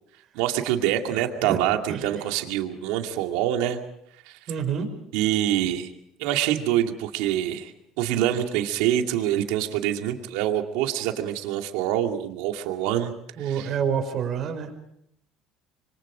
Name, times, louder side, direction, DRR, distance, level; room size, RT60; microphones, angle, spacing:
voice 1, 0.3-3.8 4.3-4.4 5.1-5.9 6.2-13.7, right 11 dB, 80° right, 4 dB, 2.4 m, -25 dB
voice 2, 4.5-4.9 13.4-14.7, right 7 dB, 50° right, 5 dB, 5.5 m, -27 dB
26.0 x 23.5 x 5.0 m, 0.76 s
supercardioid pair, 95°, 0 cm